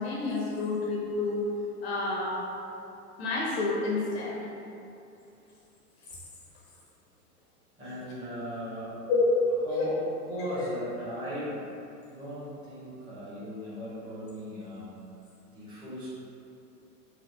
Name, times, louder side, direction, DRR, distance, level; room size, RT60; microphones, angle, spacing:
voice 1, 0.0-1.4 1.8-2.4 3.2-4.4 9.1-9.9 10.5-10.7, left 3 dB, 40° left, -4 dB, 0.6 m, -28 dB
voice 2, 7.8-9.1 9.6-11.6 12.1-14.9 15.5-16.1, equal, 10° right, -11 dB, 0.8 m, -37 dB
4.1 x 2.3 x 2.8 m, 2.7 s
figure-of-eight pair, 100°, 47 cm